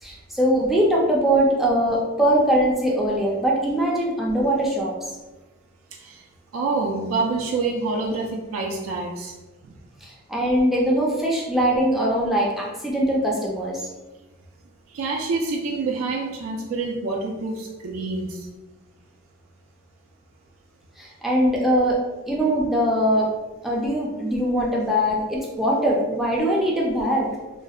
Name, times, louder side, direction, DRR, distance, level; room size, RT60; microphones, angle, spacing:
voice 1, 0.0-5.0 10.0-13.8 21.0-22.0 22.3-23.3 23.6-27.3, equal, ahead, -4 dB, 0.3 m, -21 dB
voice 2, 6.5-9.3 14.9-18.5, right 3 dB, 85° right, 0 dB, 0.3 m, -27 dB
2.5 x 2.0 x 2.3 m, 1.1 s
head